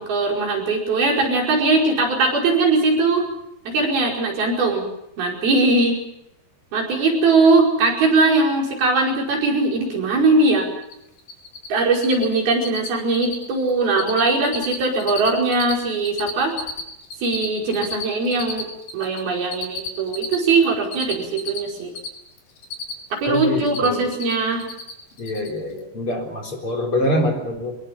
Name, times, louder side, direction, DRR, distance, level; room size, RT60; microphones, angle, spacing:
voice 1, 0.0-3.3 3.7-4.9 5.2-6.0 6.7-10.7 11.7-16.5 17.2-18.7 18.9-21.9 23.1-24.6, right 3 dB, 85° right, 0 dB, 7.0 m, -20 dB
Cricket, 10.8-10.9 11.2-11.7 11.9-12.3 12.5-12.9 13.1-13.4 13.7-14.2 14.5-15.7 16.0-19.2 19.5-22.1 22.4-23.2 23.5-24.3 24.6-24.9 25.2-25.5, left 5 dB, 80° left, 5.0 m, -31 dB
voice 2, 23.3-24.1 25.2-27.8, left 1 dB, 35° left, 2 dB, 4.6 m, -25 dB
24.5 x 21.5 x 7.1 m, 0.82 s
omnidirectional pair, 4.2 m